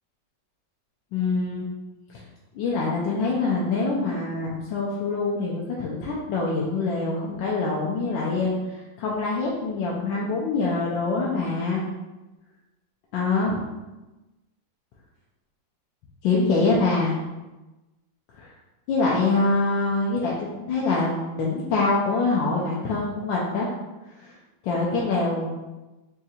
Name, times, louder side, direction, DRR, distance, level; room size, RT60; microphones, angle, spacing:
voice 1, 1.1-1.7 2.1-2.2 2.5-11.8 13.1-13.6 16.2-17.2 18.3-18.5 18.9-23.7 24.1-24.3 24.6-25.5, left 3 dB, 80° left, -4 dB, 1.3 m, -25 dB
3.7 x 2.4 x 4.1 m, 1.1 s
omnidirectional pair, 2.1 m